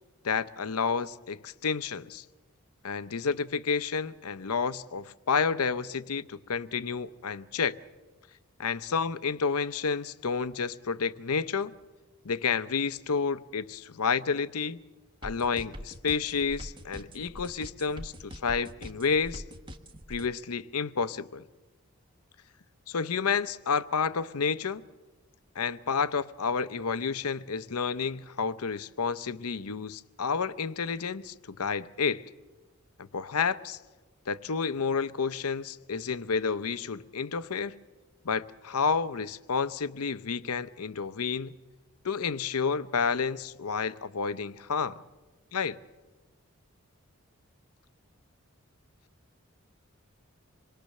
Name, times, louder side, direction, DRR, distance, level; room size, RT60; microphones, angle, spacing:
voice 1, 0.2-2.2 2.8-7.8 8.6-11.7 12.2-14.8 15.2-19.4 20.1-21.4 22.9-24.8 25.6-32.3 33.0-33.8 34.3-37.7 38.2-41.5 42.0-45.0 45.5-45.8, left 5 dB, 90° left, 0.7 m, -30 dB
sound 1, 15.2-20.3, equal, 20° right, 1.1 m, -42 dB
26.5 x 21.5 x 6.6 m
head